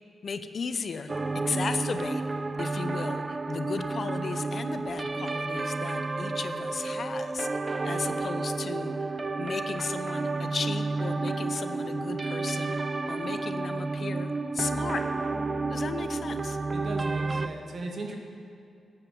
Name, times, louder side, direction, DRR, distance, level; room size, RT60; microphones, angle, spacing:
voice 1, 0.2-1.1 1.5-2.2 2.6-15.0 15.7-16.6, left 5 dB, 60° left, 10 dB, 0.7 m, -35 dB
sound 1, 1.1-17.5, right 3 dB, 35° right, 0.5 m, -31 dB
voice 2, 16.7-18.2, right 2 dB, 60° right, 2 dB, 1.9 m, -37 dB
15.0 x 9.5 x 5.3 m, 2.4 s
supercardioid pair, 45°, 0 cm